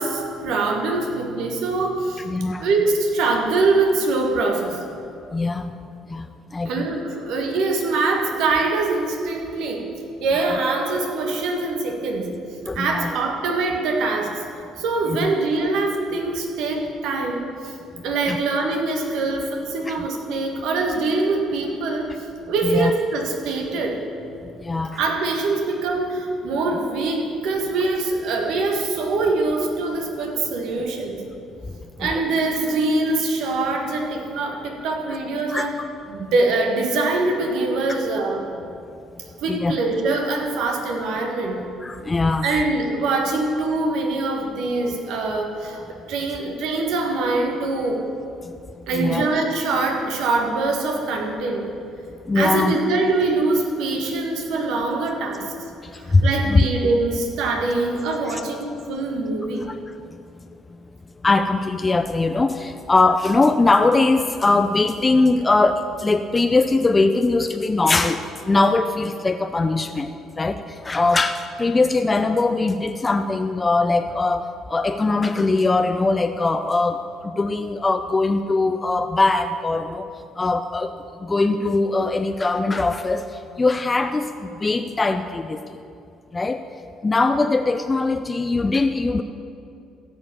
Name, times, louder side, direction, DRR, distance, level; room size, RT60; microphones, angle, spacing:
voice 1, 0.0-2.2 2.6-4.8 6.6-9.9 10.2-12.3 12.7-14.4 14.8-17.7 18.0-22.1 22.5-24.0 25.0-31.3 32.0-35.7 36.1-38.5 39.4-41.6 42.4-48.0 48.9-51.7 52.3-55.5 56.2-59.7, right 3 dB, 70° right, 2 dB, 1.6 m, -23 dB
voice 2, 2.3-2.7 5.3-5.8 6.1-6.3 6.5-6.9 12.7-13.1 15.1-15.3 18.3-18.4 19.9-20.1 22.6-22.9 24.6-25.0 32.0-32.2 35.5-35.9 39.5-39.8 41.8-42.6 48.9-49.2 52.3-52.8 56.1-56.7 58.3-58.4 59.6-59.7 61.2-70.1 70.4-80.1 80.4-80.9 81.2-83.3 83.6-85.6 86.3-86.6 87.0-89.2, left 3 dB, 25° left, 8 dB, 0.5 m, -21 dB
15.0 x 5.1 x 7.0 m, 2.5 s
hypercardioid pair, 60°, 0 cm